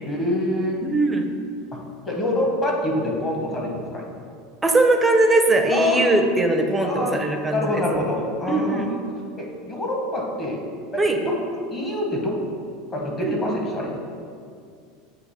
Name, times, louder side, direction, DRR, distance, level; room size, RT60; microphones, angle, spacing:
voice 1, 0.0-0.8 1.7-4.1 5.7-6.0 6.8-7.1 7.5-8.9 9.4-10.6 10.9-11.2 11.7-12.4 12.9-14.0, left 1 dB, 20° left, -1 dB, 1.0 m, -26 dB
voice 2, 0.8-1.3 4.6-7.8 8.5-8.9 11.0-11.2 13.2-13.3, right 2 dB, 10° right, 4 dB, 0.5 m, -20 dB
7.9 x 2.8 x 4.1 m, 2.3 s
supercardioid pair, 140°, 0 cm